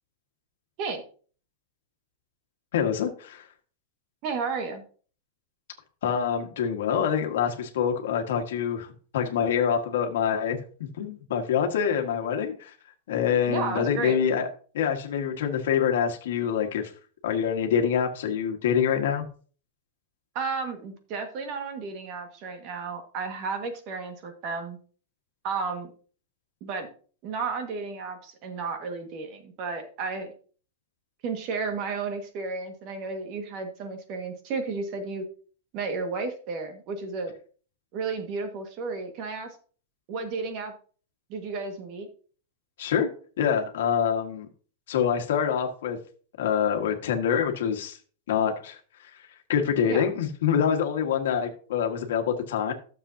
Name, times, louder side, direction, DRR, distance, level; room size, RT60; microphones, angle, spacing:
voice 1, 2.7-3.5 6.0-12.7 13.1-14.5 14.7-16.9 17.2-19.2 42.8-43.1 43.4-44.5 44.9-46.0 46.4-48.0 48.3-49.1 49.5-52.7, left 8 dB, 75° left, 4 dB, 1.6 m, -26 dB
voice 2, 4.2-4.8 13.5-14.2 20.3-24.8 25.4-25.9 26.6-26.9 27.2-30.3 31.2-35.2 35.7-37.3 37.9-39.6 40.1-40.7 41.3-42.1 49.9-50.0, right 4 dB, 35° right, 6 dB, 1.7 m, -33 dB
13.0 x 7.2 x 2.8 m, 0.41 s
supercardioid pair, 165°, 0 cm